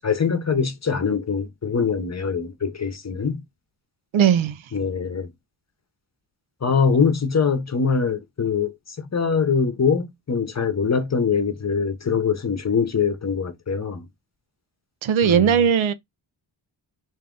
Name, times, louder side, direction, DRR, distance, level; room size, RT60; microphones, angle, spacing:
voice 1, 0.0-3.4 4.7-5.3 6.6-14.1 15.2-15.5, left 5 dB, 35° left, 0.8 m, -23 dB
voice 2, 4.1-4.6 15.0-15.9, right 8 dB, 85° right, 0.6 m, -18 dB
3.4 x 2.7 x 3.7 m
cardioid pair, 75°, 46 cm